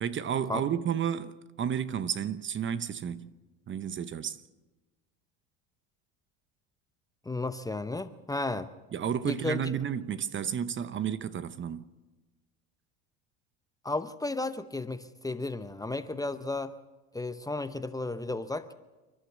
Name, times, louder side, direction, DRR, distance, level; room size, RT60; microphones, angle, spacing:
voice 1, 0.0-3.3 3.7-4.4 8.9-11.9, right 8 dB, 30° right, 0.8 m, -32 dB
voice 2, 7.3-8.7 9.2-9.6 13.8-16.7 17.1-18.7, left 2 dB, 10° left, 0.8 m, -33 dB
29.0 x 11.5 x 8.1 m
supercardioid pair, 110°, 36 cm